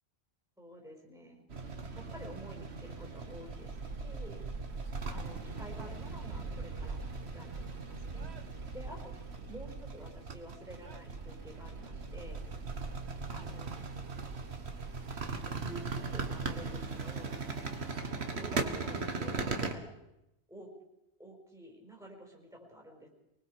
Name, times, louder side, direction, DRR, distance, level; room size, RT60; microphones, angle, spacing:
voice 1, 0.6-1.5 1.9-3.7 4.0-4.5 5.1-8.5 8.7-12.4 13.3-13.8 15.5-17.4 18.3-20.0 20.5-20.7 21.2-23.1, equal, 5° right, -1 dB, 4.8 m, -50 dB
sound 1, 1.5-19.7, right 4 dB, 75° right, 1.9 m, -39 dB
24.0 x 22.0 x 4.9 m, 0.87 s
omnidirectional pair, 1.1 m